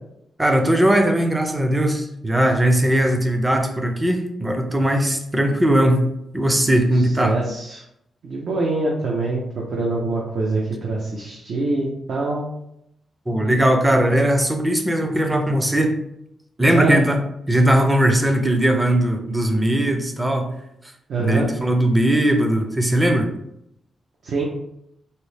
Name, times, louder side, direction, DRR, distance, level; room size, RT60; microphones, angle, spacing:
voice 1, 0.4-6.0 6.3-7.4 13.3-16.0 16.6-17.2 17.5-20.5 21.2-23.3, right 1 dB, 10° right, 4 dB, 0.5 m, -19 dB
voice 2, 7.0-7.8 8.2-9.4 9.7-12.5 16.7-17.0 21.1-21.5 24.2-24.4, right 3 dB, 65° right, -2 dB, 0.6 m, -24 dB
4.1 x 2.0 x 3.2 m, 0.78 s
wide cardioid pair, 130°, 0 cm